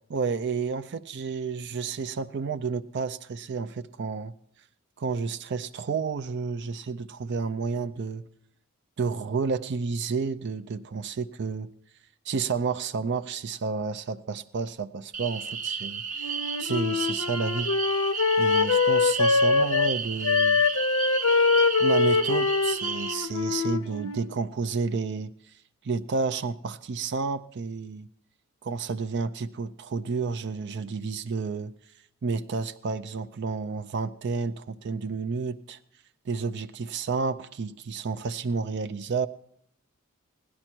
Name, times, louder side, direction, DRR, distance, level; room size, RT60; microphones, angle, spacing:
voice 1, 0.1-4.3 5.0-8.2 9.0-11.7 12.3-16.0 16.6-17.7 18.4-20.6 21.8-25.3 25.8-28.1 28.6-31.7 32.2-35.8 36.3-39.3, right 4 dB, 55° right, 0.4 m, -30 dB
sound 1, 15.1-23.1, right 5 dB, 40° right, 0.8 m, -33 dB
Wind instrument woodwind instrument, 16.2-19.9 20.2-24.3, left 4 dB, 80° left, 0.7 m, -24 dB
16.5 x 11.0 x 4.5 m
head